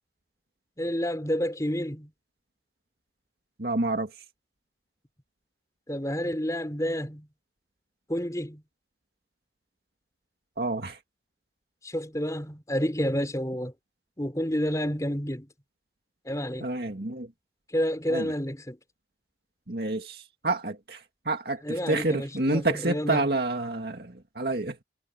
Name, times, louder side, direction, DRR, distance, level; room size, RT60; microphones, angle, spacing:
voice 1, 0.8-2.1 5.9-7.3 8.1-8.6 11.8-13.7 14.2-15.5 16.3-16.7 17.7-18.8 21.6-23.2, equal, 20° left, 3.8 m, -29 dB
voice 2, 3.6-4.1 10.6-11.0 16.6-17.3 18.1-18.3 19.7-24.8, right 2 dB, 60° right, 2.1 m, -29 dB
head